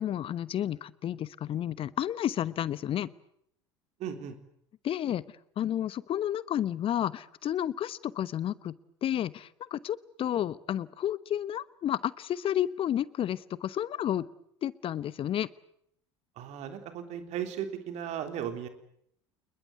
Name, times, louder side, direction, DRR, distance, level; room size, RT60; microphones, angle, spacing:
voice 1, 0.0-3.1 4.8-5.2 5.6-8.7 9.0-14.3 14.6-15.5, left 11 dB, 35° left, 19 dB, 1.0 m, -31 dB
voice 2, 4.0-4.4 16.4-18.7, right 9 dB, 50° right, 8 dB, 3.6 m, -36 dB
27.5 x 21.0 x 8.2 m, 0.70 s
figure-of-eight pair, 70°, 15 cm